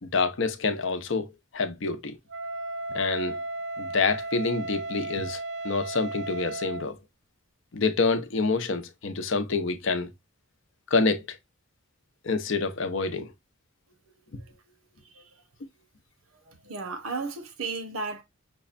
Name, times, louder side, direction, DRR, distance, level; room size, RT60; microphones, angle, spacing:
voice 1, 0.0-2.2 2.9-3.4 3.8-5.4 5.6-7.0 7.7-10.1 10.9-11.4 12.2-13.3 14.3-14.4, left 4 dB, 65° left, 0.7 m, -27 dB
Wind instrument woodwind instrument, 2.3-6.9, right 2 dB, 60° right, 0.5 m, -35 dB
voice 2, 15.0-15.4 16.5-18.2, right 4 dB, 80° right, 0.9 m, -35 dB
6.0 x 2.2 x 2.4 m
head